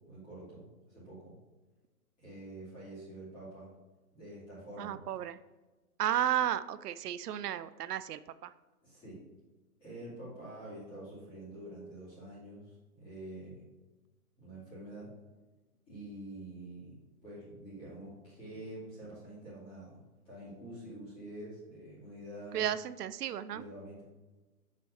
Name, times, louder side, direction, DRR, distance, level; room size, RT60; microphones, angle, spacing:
voice 1, 0.0-1.3 2.2-3.7 4.1-5.0 8.8-9.2 9.8-13.7 14.4-15.1 15.9-17.0 17.2-22.7 23.5-24.0, right 1 dB, 10° left, -9 dB, 2.4 m, -47 dB
voice 2, 4.8-5.4 6.0-8.5 22.5-23.6, right 11 dB, 90° right, 14 dB, 0.6 m, -33 dB
6.7 x 4.0 x 4.9 m, 1.2 s
hypercardioid pair, 175°, 45 cm